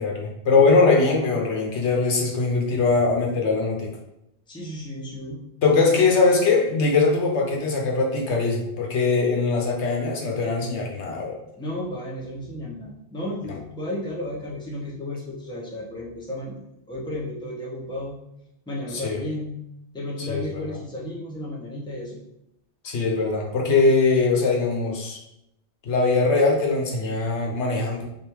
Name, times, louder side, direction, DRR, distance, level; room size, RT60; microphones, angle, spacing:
voice 1, 0.0-3.9 5.6-11.4 13.5-13.6 18.9-19.2 20.3-20.8 22.8-25.2 25.9-28.1, left 4 dB, 75° left, 0 dB, 1.1 m, -21 dB
voice 2, 4.5-5.4 5.8-6.0 11.6-16.6 16.9-18.2 18.7-19.5 19.9-22.2, left 1 dB, 5° left, -5 dB, 0.8 m, -33 dB
3.4 x 2.6 x 4.5 m, 0.83 s
omnidirectional pair, 1.2 m